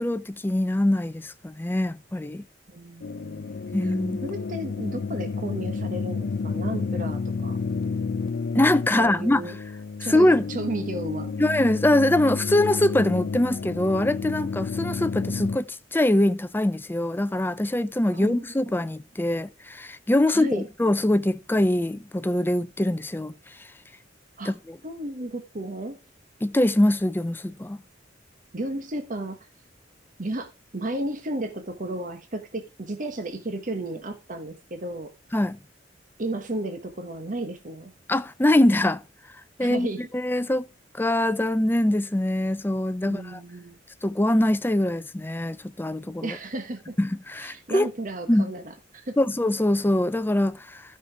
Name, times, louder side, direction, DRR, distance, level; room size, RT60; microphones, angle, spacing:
voice 1, 0.0-2.4 3.7-4.2 8.5-9.4 10.1-10.5 11.4-23.3 24.5-24.8 26.4-27.8 35.3-35.6 38.1-39.0 39.6-39.9 40.1-40.7 40.9-43.4 44.0-46.4 47.0-47.9 48.3-48.5 49.2-50.8, left 1 dB, 10° left, 0.5 m, -23 dB
voice 2, 2.7-3.5 3.8-4.0 4.2-7.6 8.9-9.6 10.0-11.3 18.1-18.7 20.3-20.7 24.4-24.5 24.8-26.0 28.5-29.5 30.2-35.1 36.2-37.9 39.6-40.1 43.1-43.8 46.2-47.0 47.4-49.2, right 1 dB, 45° right, 1.2 m, -33 dB
sound 1, 3.0-15.6, left 4 dB, 60° left, 0.5 m, -31 dB
13.0 x 5.8 x 4.6 m
head